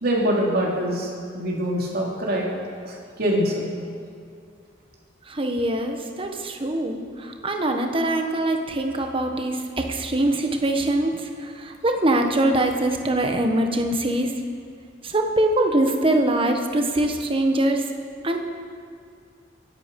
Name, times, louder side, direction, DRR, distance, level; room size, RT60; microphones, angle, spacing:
voice 1, 0.0-2.6 2.8-3.7, equal, 55° right, -2 dB, 3.1 m, -24 dB
voice 2, 5.3-14.3 15.0-17.8 18.2-18.4, right 1 dB, 30° right, 4 dB, 1.3 m, -23 dB
22.0 x 11.0 x 5.4 m, 2.2 s
head